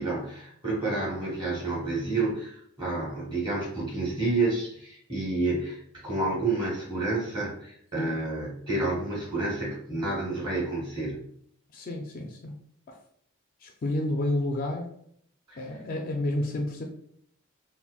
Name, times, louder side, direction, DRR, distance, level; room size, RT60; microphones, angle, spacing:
voice 1, 0.0-11.2 15.5-15.6, right 2 dB, 20° right, -5 dB, 1.1 m, -29 dB
voice 2, 11.7-12.6 12.9-13.0 13.6-14.9 15.6-16.8, left 1 dB, 40° left, 2 dB, 0.3 m, -30 dB
3.8 x 2.1 x 2.3 m, 0.66 s
head